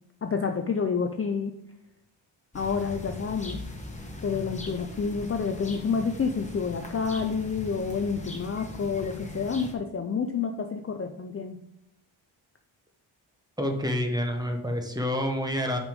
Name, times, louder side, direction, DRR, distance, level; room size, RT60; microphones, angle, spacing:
voice 1, 0.2-1.5 2.5-3.6 4.2-11.6, left 5 dB, 30° left, 5 dB, 0.4 m, -29 dB
sound 1, 2.5-9.7, left 2 dB, 15° left, 1.1 m, -40 dB
voice 2, 13.6-15.8, left 1 dB, 10° right, 3 dB, 0.9 m, -28 dB
6.1 x 5.3 x 5.1 m, 0.78 s
wide cardioid pair, 160°, 47 cm